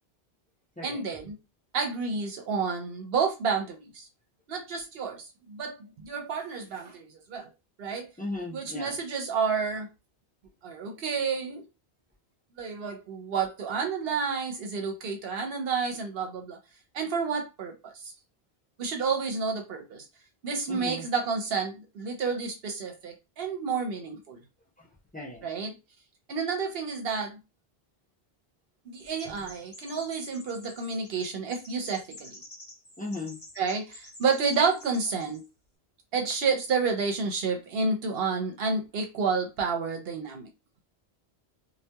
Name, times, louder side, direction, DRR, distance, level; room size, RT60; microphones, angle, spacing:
voice 1, 0.8-1.4 1.7-4.1 4.5-7.5 7.8-8.1 8.5-9.9 10.6-11.6 12.6-16.6 16.9-18.1 18.8-20.1 20.4-24.4 25.4-25.7 26.3-27.4 28.9-32.4 33.6-35.4 36.1-40.5, right 5 dB, 65° right, 0.8 m, -30 dB
voice 2, 8.2-9.0 20.7-21.1 24.8-24.9 25.1-25.5 33.0-33.4, left 2 dB, 15° left, 0.3 m, -37 dB
Chirp tweet, 28.9-35.5, left 1 dB, 40° left, 1.4 m, -50 dB
2.8 x 2.1 x 2.2 m
omnidirectional pair, 1.1 m